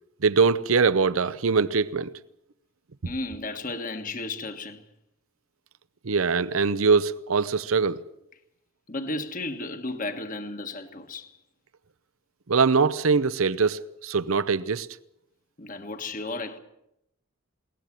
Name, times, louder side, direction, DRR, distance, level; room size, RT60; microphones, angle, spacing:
voice 1, 0.2-2.1 6.0-8.0 12.5-14.9, right 5 dB, 75° right, 0.7 m, -22 dB
voice 2, 3.0-4.8 8.9-11.4 15.6-16.6, left 2 dB, 40° left, 1.5 m, -34 dB
22.0 x 18.5 x 7.5 m
head